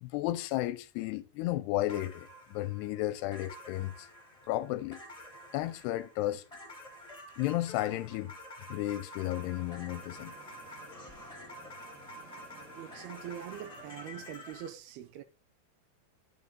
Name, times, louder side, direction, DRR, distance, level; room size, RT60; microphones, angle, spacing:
voice 1, 0.0-4.1 4.5-5.0 5.5-6.5 7.4-8.3 8.7-10.3, left 15 dB, 80° left, 2.5 m, -33 dB
sound 1, 1.9-14.7, left 1 dB, 10° left, 2.0 m, -49 dB
sound 2, 9.2-14.3, right 1 dB, 20° right, 2.9 m, -54 dB
voice 2, 12.8-15.2, right 11 dB, 75° right, 2.5 m, -43 dB
10.5 x 9.4 x 3.9 m
omnidirectional pair, 4.9 m